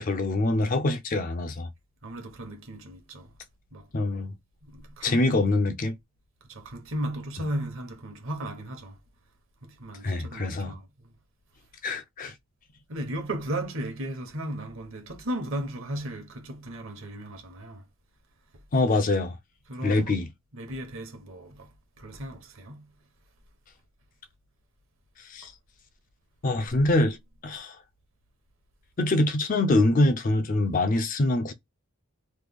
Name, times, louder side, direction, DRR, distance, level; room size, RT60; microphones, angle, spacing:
voice 1, 0.0-1.7 3.9-4.3 5.0-6.0 10.0-10.7 11.8-12.3 18.7-19.4 19.8-20.3 25.3-25.5 26.4-27.2 27.4-27.8 29.0-31.5, left 2 dB, 35° left, 0.4 m, -24 dB
voice 2, 2.0-3.3 3.7-3.9 4.6-5.4 6.5-9.0 9.6-11.1 12.9-17.8 19.7-20.1 20.5-21.7 22.0-22.9, right 1 dB, 60° right, 1.0 m, -36 dB
3.1 x 2.2 x 3.5 m
head